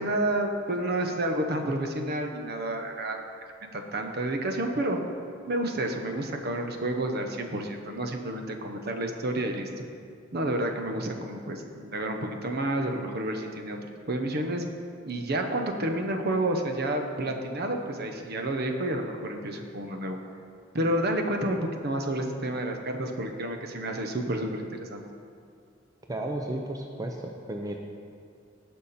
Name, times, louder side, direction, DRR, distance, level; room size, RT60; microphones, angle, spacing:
voice 1, 0.0-3.2 3.7-5.0 5.5-9.7 10.3-13.8 14.1-14.6 15.1-20.2 20.7-25.0, right 1 dB, 50° right, 4 dB, 0.9 m, -30 dB
voice 2, 26.1-27.8, right 1 dB, 20° right, 2 dB, 0.6 m, -33 dB
16.5 x 5.6 x 4.2 m, 2.3 s
head